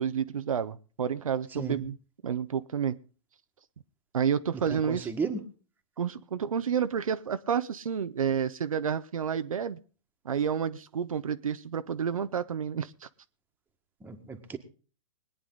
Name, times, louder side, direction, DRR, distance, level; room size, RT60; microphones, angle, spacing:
voice 1, 0.0-2.0 2.2-3.0 4.1-5.1 6.0-9.8 10.2-13.1, right 7 dB, 85° right, 11 dB, 0.8 m, -30 dB
voice 2, 4.7-5.4 14.0-14.6, right 5 dB, 10° right, 4 dB, 1.8 m, -34 dB
21.0 x 9.6 x 3.9 m, 0.37 s
hypercardioid pair, 125°, 17 cm